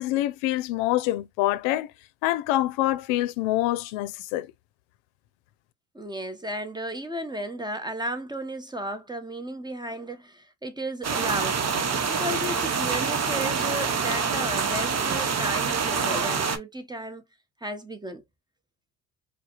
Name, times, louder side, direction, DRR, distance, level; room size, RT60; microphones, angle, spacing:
voice 1, 0.0-1.9 2.2-4.5, left 15 dB, 80° left, 0.6 m, -25 dB
voice 2, 5.9-11.6 12.1-17.2 17.6-18.2, right 1 dB, 10° right, 1.0 m, -34 dB
sound 1, 11.0-16.6, right 5 dB, 35° right, 0.9 m, -26 dB
4.7 x 2.2 x 3.0 m
supercardioid pair, 80°, 46 cm